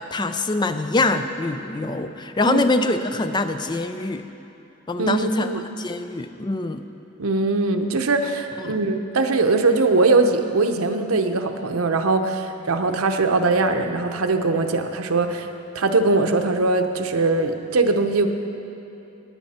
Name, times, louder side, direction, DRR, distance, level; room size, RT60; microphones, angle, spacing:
voice 1, 0.0-4.2 4.9-5.5 5.8-6.9 8.6-8.8, left 2 dB, 20° left, 9 dB, 0.4 m, -24 dB
voice 2, 5.0-5.6 7.2-15.5 15.7-18.3, right 3 dB, 90° right, 5 dB, 0.8 m, -21 dB
17.0 x 9.3 x 4.3 m, 2.8 s
head